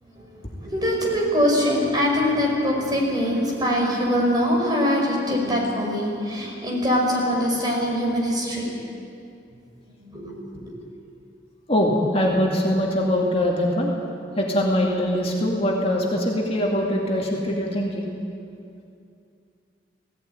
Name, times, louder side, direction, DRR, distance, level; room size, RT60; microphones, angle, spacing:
voice 1, 0.2-8.8 10.0-10.7, equal, 25° right, -2 dB, 5.0 m, -23 dB
voice 2, 11.7-13.9 14.4-18.1, left 1 dB, 35° left, -1 dB, 2.3 m, -22 dB
17.0 x 17.0 x 9.3 m, 2.5 s
head